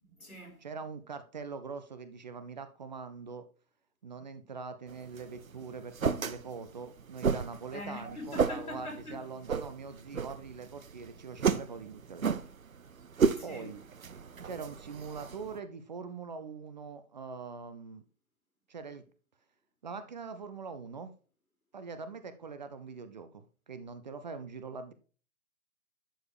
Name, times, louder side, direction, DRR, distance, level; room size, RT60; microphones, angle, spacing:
voice 1, 0.0-0.6 7.7-9.3 13.0-13.7, left 2 dB, 85° left, 3.7 m, -44 dB
voice 2, 0.6-3.4 4.0-12.3 13.4-13.8 14.4-18.0 18.7-19.0 19.8-21.1 21.7-24.9, right 5 dB, 30° right, 0.7 m, -43 dB
sound 1, 4.9-15.6, right 6 dB, 70° right, 0.8 m, -34 dB
11.0 x 4.9 x 3.4 m
figure-of-eight pair, 130°, 43 cm